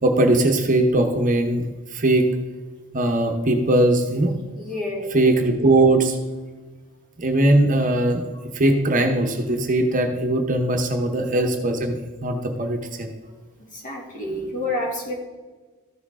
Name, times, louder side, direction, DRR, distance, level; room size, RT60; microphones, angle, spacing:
voice 1, 0.0-1.6 1.9-2.3 2.9-4.3 5.1-6.2 7.2-8.2 8.5-11.9 12.2-13.1, right 1 dB, 35° right, 4 dB, 0.9 m, -20 dB
voice 2, 4.5-5.1 13.7-15.1, left 1 dB, 40° left, -2 dB, 2.4 m, -28 dB
14.0 x 6.3 x 3.6 m, 1.3 s
head